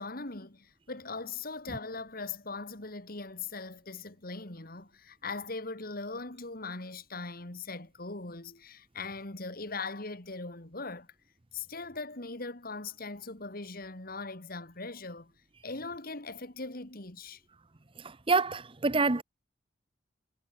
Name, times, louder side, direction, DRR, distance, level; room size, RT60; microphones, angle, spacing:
voice 1, 0.0-11.1 11.5-15.3 15.6-17.4, left 3 dB, 50° left, 2.7 m, -40 dB
voice 2, 18.3-19.2, right 3 dB, 30° right, 0.9 m, -26 dB
head